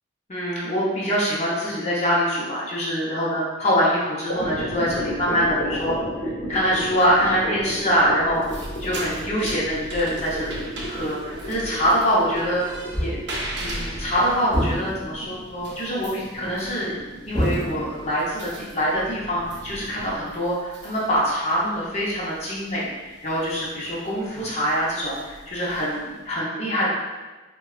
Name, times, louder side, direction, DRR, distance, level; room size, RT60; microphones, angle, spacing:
voice 1, 0.3-8.4 8.8-10.6 10.8-12.6 13.0-13.2 13.6-16.9 17.2-26.9, equal, 35° left, -7 dB, 0.7 m, -24 dB
sound 1, 4.3-20.1, equal, 85° left, 0.8 m, -33 dB
sound 2, 8.2-26.3, right 1 dB, 60° right, 0.5 m, -39 dB
sound 3, 12.9-13.4 14.5-15.3 17.3-18.2, equal, ahead, 1.1 m, -27 dB
3.9 x 2.2 x 2.3 m, 1.2 s
head